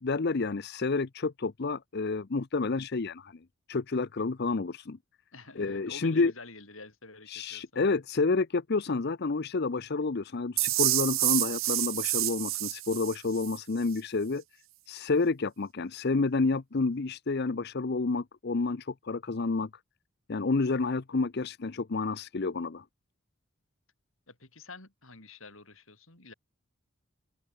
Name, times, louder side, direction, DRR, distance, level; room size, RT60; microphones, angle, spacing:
voice 1, 0.0-3.4 3.7-5.0 5.6-6.3 7.3-14.4 14.9-19.7 20.3-22.8, left 3 dB, 50° left, 0.6 m, -29 dB
voice 2, 5.3-7.6 24.3-26.3, left 3 dB, 75° left, 6.7 m, -48 dB
sound 1, 10.6-13.6, right 18 dB, 70° right, 0.8 m, -28 dB
open air
head